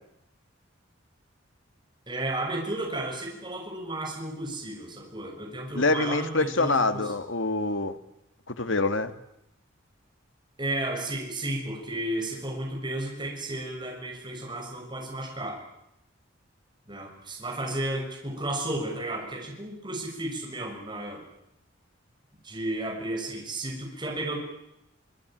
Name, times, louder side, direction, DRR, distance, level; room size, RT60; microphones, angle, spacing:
voice 1, 2.1-7.1 10.6-15.6 16.9-21.2 22.4-24.4, right 1 dB, 20° right, 0 dB, 7.0 m, -33 dB
voice 2, 5.7-8.0 8.5-9.1, left 3 dB, 70° left, 9 dB, 1.9 m, -25 dB
26.0 x 23.5 x 9.2 m, 0.84 s
head